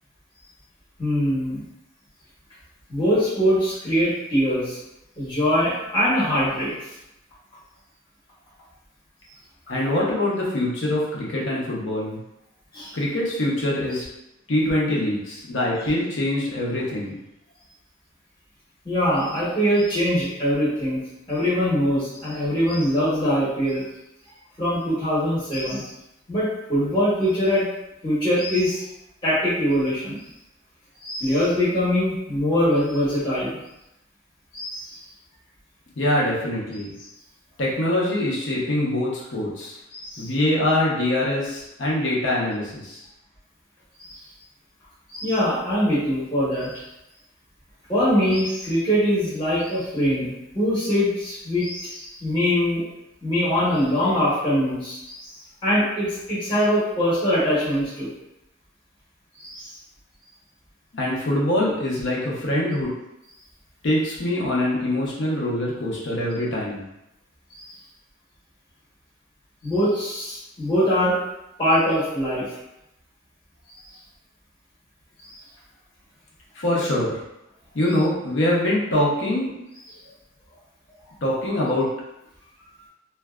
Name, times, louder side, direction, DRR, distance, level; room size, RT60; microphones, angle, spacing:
voice 1, 1.0-1.6 2.9-4.8 5.2-6.7 12.7-13.0 18.8-21.0 21.3-23.8 24.6-25.9 26.3-27.7 28.0-28.8 29.2-30.2 31.0-33.6 34.5-35.0 39.9-40.3 44.0-44.2 45.1-46.8 47.9-52.8 53.2-55.3 55.6-58.1 59.4-59.7 67.6-67.7 69.6-71.2 71.6-72.4 75.2-75.4 82.6-82.9, equal, 20° left, -11 dB, 0.9 m, -23 dB
voice 2, 9.7-12.2 12.9-14.0 14.5-17.2 36.0-36.9 37.6-39.8 40.2-43.1 60.9-62.9 63.8-66.8 76.5-77.2 77.7-79.5 81.2-81.9, left 1 dB, 60° left, -4 dB, 0.7 m, -24 dB
2.5 x 2.2 x 2.2 m, 0.88 s
head